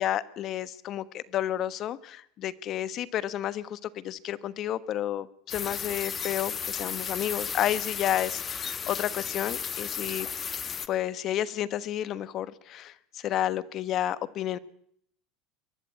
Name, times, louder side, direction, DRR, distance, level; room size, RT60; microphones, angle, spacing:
voice 1, 0.0-10.3 10.9-14.6, left 11 dB, 45° left, 17 dB, 1.2 m, -31 dB
sound 1, 5.5-10.9, left 7 dB, 30° left, 1.1 m, -34 dB
23.0 x 13.5 x 8.6 m, 0.69 s
supercardioid pair, 130°, 0 cm